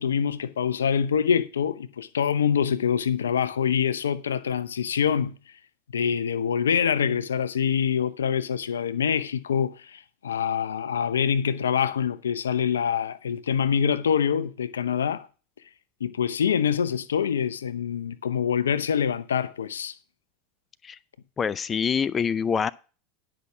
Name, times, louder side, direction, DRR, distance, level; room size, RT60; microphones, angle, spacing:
voice 1, 0.0-5.4 5.9-15.3 16.0-19.9, left 7 dB, 85° left, 0.7 m, -25 dB
voice 2, 21.4-22.7, left 6 dB, 25° left, 0.5 m, -25 dB
10.5 x 5.8 x 5.9 m
hypercardioid pair, 95°, 0 cm